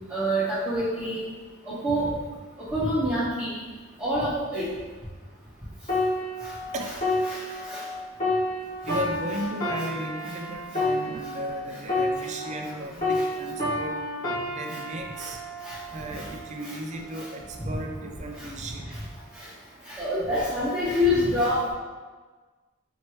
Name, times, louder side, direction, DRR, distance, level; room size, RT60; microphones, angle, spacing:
voice 1, 0.1-1.2 1.7-2.1 2.7-3.6 4.0-4.7 6.4-6.5 7.2-7.4 7.7-7.8 8.8-9.0 12.6-12.8 13.1-13.2 15.2-15.3 15.6-15.8 16.1-16.3 16.6-16.7 17.1-17.2 18.4-18.5 19.4-19.5 19.9-21.7, equal, 10° right, -13 dB, 1.1 m, -27 dB
sound 1, 5.9-12.7 13.0-16.6 17.2-17.4, left 1 dB, 40° left, 1.4 m, -30 dB
voice 2, 8.9-14.0 14.5-15.4 15.9-18.9, right 1 dB, 35° right, 2 dB, 0.4 m, -35 dB
4.5 x 2.9 x 3.0 m, 1.3 s
head